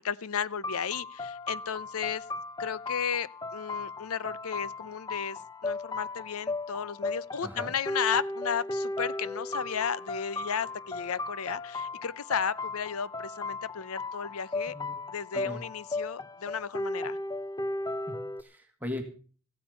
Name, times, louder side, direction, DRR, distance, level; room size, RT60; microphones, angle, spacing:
voice 1, 0.0-2.2 2.6-14.7 15.1-17.2, left 7 dB, 80° left, 0.6 m, -34 dB
sound 1, 0.6-18.4, left 2 dB, 20° left, 0.6 m, -36 dB
voice 2, 7.4-7.7 14.7-15.0 15.3-15.6 18.1-19.0, left 1 dB, 10° right, 1.8 m, -39 dB
15.0 x 8.7 x 6.9 m
head